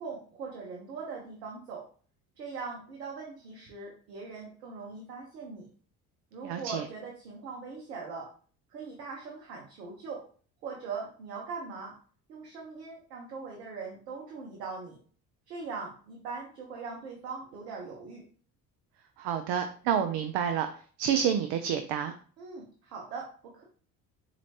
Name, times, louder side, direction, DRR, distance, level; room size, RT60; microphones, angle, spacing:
voice 1, 0.0-1.8 2.4-5.7 6.3-8.3 8.7-10.2 10.6-11.9 12.3-15.0 15.5-18.2 22.4-23.6, right 4 dB, 90° right, -2 dB, 0.9 m, -41 dB
voice 2, 6.4-6.8 19.2-20.7 21.0-22.1, right 8 dB, 60° right, 8 dB, 0.6 m, -28 dB
4.3 x 2.9 x 2.8 m, 0.42 s
hypercardioid pair, 60°, 47 cm